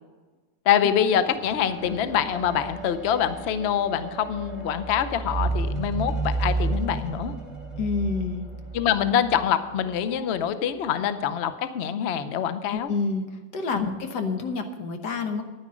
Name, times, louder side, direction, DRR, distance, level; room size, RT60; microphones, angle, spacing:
voice 1, 0.7-7.3 8.7-12.9 13.7-14.0, left 9 dB, 80° left, 11 dB, 0.5 m, -25 dB
sound 1, 0.7-10.2 11.0-11.1, right 3 dB, 5° left, 3.0 m, -32 dB
voice 2, 7.8-8.5 12.7-13.2 13.5-15.4, left 4 dB, 65° left, 6 dB, 1.7 m, -28 dB
10.5 x 9.8 x 6.2 m, 1.3 s
omnidirectional pair, 2.1 m